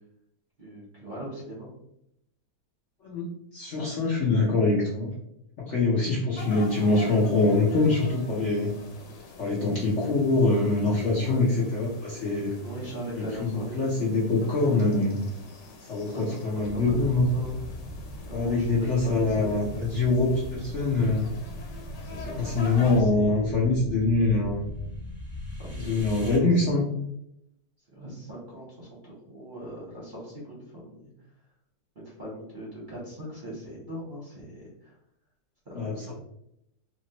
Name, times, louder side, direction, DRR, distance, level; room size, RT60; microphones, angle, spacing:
voice 1, 0.6-1.7 11.2-11.5 12.6-14.2 16.1-17.7 18.3-20.1 22.0-23.8 25.6-26.9 27.9-31.1 31.9-35.0 35.6-36.0, right 1 dB, 40° right, -6 dB, 0.8 m, -40 dB
voice 2, 3.5-5.1 5.7-8.7 9.4-12.5 13.2-15.2 15.9-17.3 18.3-21.3 22.3-24.7 25.8-26.8 35.7-36.1, left 3 dB, 60° left, -6 dB, 0.8 m, -24 dB
sound 1, 6.3-23.0, left 3 dB, 80° left, 1.3 m, -45 dB
sound 2, 16.6-26.4, equal, 30° left, 1.0 m, -39 dB
2.9 x 2.9 x 2.8 m, 0.79 s
omnidirectional pair, 1.9 m